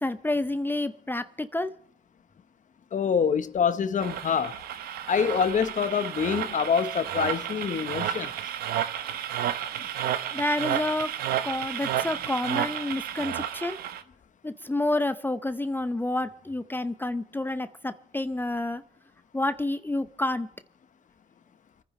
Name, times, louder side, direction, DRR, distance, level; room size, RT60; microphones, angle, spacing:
voice 1, 0.0-1.7 10.3-11.1 11.4-13.8 14.4-18.8 19.3-20.5, left 2 dB, 15° left, 0.7 m, -29 dB
voice 2, 2.9-4.5 5.1-8.3, left 7 dB, 55° left, 1.1 m, -25 dB
sound 1, 4.0-14.0, right 10 dB, 90° right, 0.8 m, -32 dB
29.0 x 10.0 x 3.2 m
cardioid pair, 65°, 15 cm